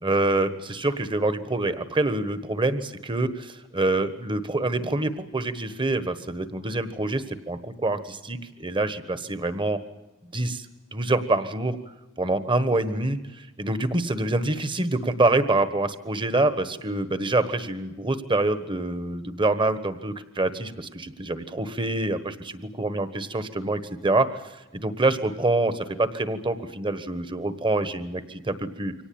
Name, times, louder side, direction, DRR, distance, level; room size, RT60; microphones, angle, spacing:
voice 1, 0.0-9.8 10.3-10.7 10.9-11.8 12.2-24.4 24.7-28.9, right 2 dB, 25° right, 11 dB, 1.4 m, -26 dB
24.5 x 18.0 x 8.7 m, 1.1 s
head